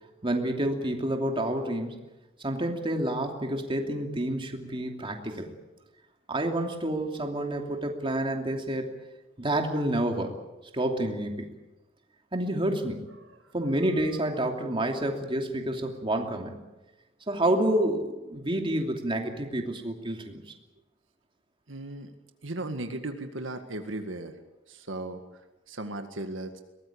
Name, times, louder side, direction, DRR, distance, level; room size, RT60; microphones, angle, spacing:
voice 1, 0.2-2.0 2.4-5.5 6.3-8.9 9.4-10.3 10.7-11.5 12.3-13.1 13.5-16.6 17.3-20.4, right 1 dB, 25° right, 3 dB, 2.8 m, -29 dB
voice 2, 13.2-13.5 21.7-22.1 22.4-24.4 24.7-25.2 25.7-26.6, right 2 dB, 70° right, 6 dB, 1.9 m, -36 dB
23.0 x 19.0 x 8.7 m, 1.0 s
head